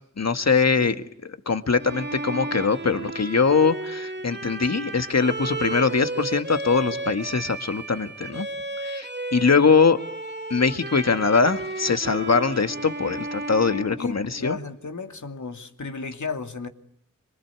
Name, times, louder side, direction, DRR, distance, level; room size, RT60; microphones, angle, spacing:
voice 1, 0.2-8.5 8.8-10.0 10.5-14.6, left 5 dB, 60° left, 1.9 m, -22 dB
Bowed string instrument, 1.8-9.7 9.9-14.7, right 2 dB, 35° right, 2.4 m, -34 dB
voice 2, 14.0-16.7, left 4 dB, 75° left, 2.6 m, -33 dB
25.5 x 24.0 x 9.7 m
cardioid pair, 40°, 29 cm